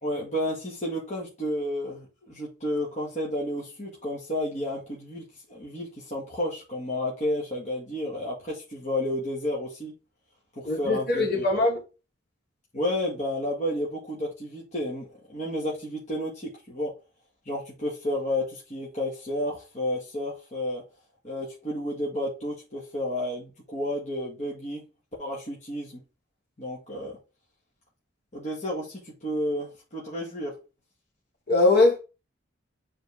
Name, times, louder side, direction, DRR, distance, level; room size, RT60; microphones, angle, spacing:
voice 1, 0.0-9.9 10.6-11.7 12.7-17.0 17.5-20.8 21.2-24.8 25.2-26.0 26.6-27.1 28.3-30.6, left 1 dB, 40° left, 1.8 m, -31 dB
voice 2, 10.6-11.8 31.5-32.0, left 2 dB, 55° left, 2.4 m, -21 dB
7.3 x 3.9 x 3.6 m
head